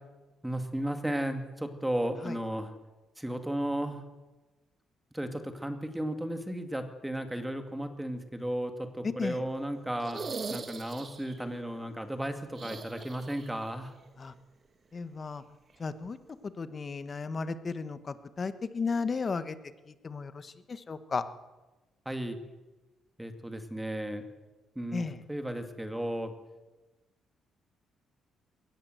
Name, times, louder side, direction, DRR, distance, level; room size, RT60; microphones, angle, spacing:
voice 1, 0.4-2.7 3.2-4.0 5.1-10.2 10.5-13.9 22.1-22.4 23.2-24.2 24.8-26.3, right 1 dB, 5° right, 7 dB, 2.2 m, -34 dB
voice 2, 9.0-9.4 14.2-14.3 14.9-15.4 15.8-16.2 16.4-19.5 19.9-21.2 24.9-25.2, left 4 dB, 30° left, 12 dB, 1.3 m, -34 dB
sound 1, 10.0-11.4 12.5-13.7 14.0-14.1 15.7-15.8, right 4 dB, 35° right, 2.2 m, -40 dB
22.0 x 18.0 x 7.9 m, 1.1 s
cardioid pair, 125°, 0 cm